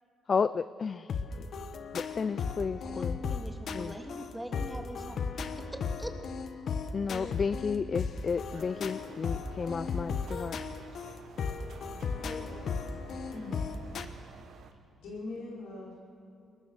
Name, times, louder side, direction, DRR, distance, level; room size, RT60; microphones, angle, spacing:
voice 1, 0.3-1.5 1.9-3.2 3.7-3.9 6.9-10.6, left 5 dB, 50° left, 16 dB, 0.4 m, -32 dB
sound 1, 1.1-14.0, left 5 dB, 65° left, 1.2 m, -36 dB
voice 2, 3.3-5.3 5.6-6.1, equal, 5° right, 3 dB, 2.6 m, -42 dB
sound 2, 8.5-14.7, right 7 dB, 70° right, 1.4 m, -52 dB
voice 3, 12.1-12.9 13.3-13.7 14.4-14.5 15.0-16.0, left 2 dB, 80° left, -4 dB, 5.2 m, -43 dB
22.0 x 20.0 x 6.6 m, 2.7 s
supercardioid pair, 60°, 0 cm